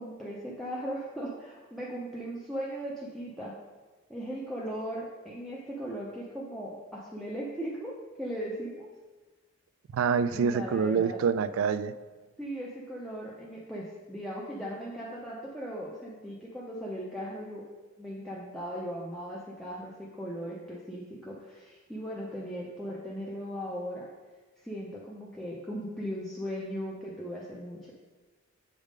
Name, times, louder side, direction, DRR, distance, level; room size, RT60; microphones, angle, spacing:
voice 1, 0.0-3.5 4.1-8.9 10.3-11.2 12.4-17.6 18.0-24.1 24.6-27.9, equal, ahead, -5 dB, 0.5 m, -38 dB
voice 2, 9.9-11.9, right 6 dB, 80° right, 14 dB, 0.3 m, -26 dB
Drum, 10.3-13.3, left 1 dB, 80° left, 1.7 m, -52 dB
7.3 x 3.5 x 5.1 m, 1.3 s
head